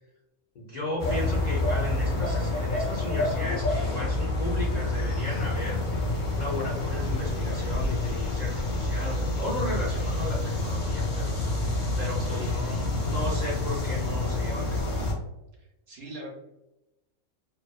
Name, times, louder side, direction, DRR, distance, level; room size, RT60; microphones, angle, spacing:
voice 1, 0.6-5.8 6.4-11.4 12.0-14.9, left 1 dB, 75° left, -5 dB, 0.4 m, -35 dB
sound 1, 1.0-15.1, left 2 dB, 45° left, 0.7 m, -28 dB
voice 2, 12.2-12.6 15.6-16.3, right 2 dB, 60° right, -1 dB, 0.7 m, -42 dB
2.4 x 2.3 x 2.3 m, 0.92 s
omnidirectional pair, 1.4 m